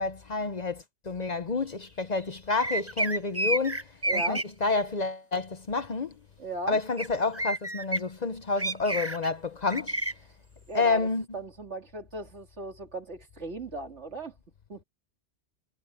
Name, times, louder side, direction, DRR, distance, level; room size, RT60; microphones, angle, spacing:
voice 1, 0.0-6.2 6.7-10.0 10.7-11.2, left 3 dB, 40° left, 0.8 m, -29 dB
sound 1, 2.6-4.4 7.0-7.1 7.3-8.0 8.6-9.3 9.7-10.1, right 2 dB, 15° right, 1.1 m, -29 dB
voice 2, 4.1-4.4 6.4-6.8 10.7-11.0 11.3-14.4 14.7-14.8, right 2 dB, 80° right, 2.9 m, -37 dB
omnidirectional pair, 1.2 m